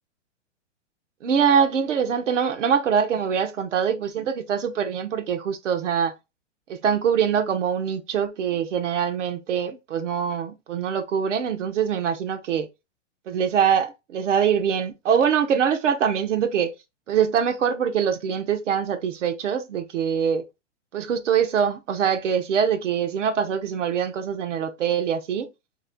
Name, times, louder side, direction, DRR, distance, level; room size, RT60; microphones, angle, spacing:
voice 1, 1.2-6.1 6.7-12.7 13.3-16.7 17.1-20.4 20.9-25.5, right 7 dB, 80° right, 0.9 m, -23 dB
3.1 x 2.5 x 3.7 m
hypercardioid pair, 135°, 36 cm